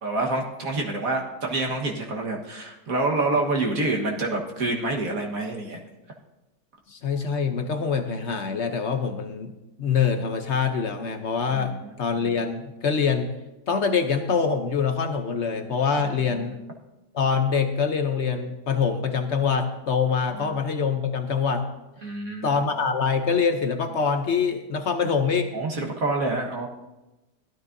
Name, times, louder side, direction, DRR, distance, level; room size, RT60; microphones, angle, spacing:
voice 1, 0.0-5.8 11.5-11.9 16.0-16.5 20.4-20.5 22.0-22.6 25.5-26.7, right 2 dB, 55° right, 0 dB, 1.8 m, -27 dB
voice 2, 6.9-9.5 9.8-13.3 13.7-16.6 17.1-21.7 22.4-25.5, left 6 dB, 55° left, 6 dB, 0.8 m, -24 dB
16.0 x 12.5 x 2.7 m, 1.0 s
omnidirectional pair, 1.8 m